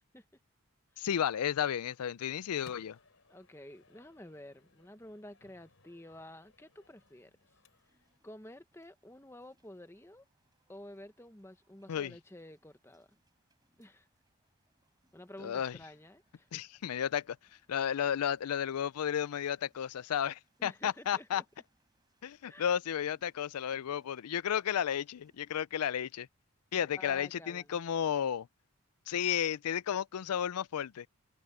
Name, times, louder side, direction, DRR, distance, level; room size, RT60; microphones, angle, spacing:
voice 1, 1.0-3.0 11.9-12.1 15.4-15.8 16.5-17.4 17.7-21.4 22.2-26.3 26.7-28.5 29.1-31.1, left 9 dB, 90° left, 0.4 m, -33 dB
Microwave oven, 2.2-8.2, left 3 dB, 70° left, 3.8 m, -64 dB
voice 2, 3.3-7.3 8.2-10.2 10.7-13.1 13.8-14.1 15.1-16.5 20.6-21.4 22.5-22.7 26.8-27.8, left 1 dB, 10° left, 1.0 m, -51 dB
Raining Urban Back Alley, 6.7-25.7, right 1 dB, 20° right, 7.9 m, -76 dB
head